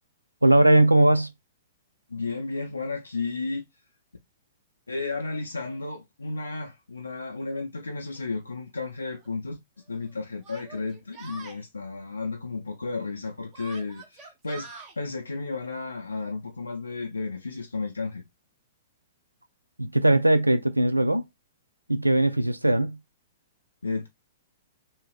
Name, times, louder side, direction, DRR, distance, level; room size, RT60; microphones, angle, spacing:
voice 1, 0.4-1.3 19.8-21.2 21.9-23.0, right 1 dB, 85° right, 0.3 m, -19 dB
voice 2, 2.1-3.7 4.9-9.6 9.9-18.2 23.8-24.1, left 3 dB, 75° left, 0.5 m, -33 dB
Yell, 8.1-8.2 9.2-9.3 10.4-11.6 13.5-15.0, right 4 dB, 25° right, 1.0 m, -44 dB
3.1 x 2.7 x 2.3 m
figure-of-eight pair, 110°, 0 cm